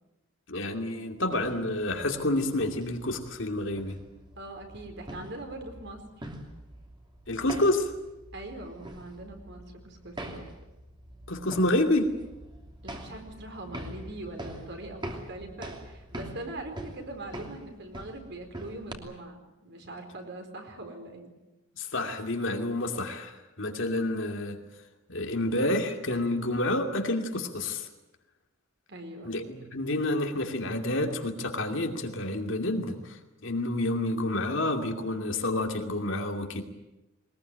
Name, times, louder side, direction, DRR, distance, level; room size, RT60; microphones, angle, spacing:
voice 1, 0.5-4.0 7.3-7.9 11.3-12.1 21.8-24.6 25.1-27.9 29.2-36.6, left 1 dB, 60° left, 4 dB, 2.6 m, -29 dB
sound 1, 1.2-18.9, right 1 dB, 25° right, 2.9 m, -44 dB
voice 2, 4.4-6.2 8.3-10.5 12.8-21.3 28.9-29.4, right 2 dB, 55° right, 4 dB, 4.4 m, -42 dB
22.0 x 20.5 x 9.3 m, 0.96 s
head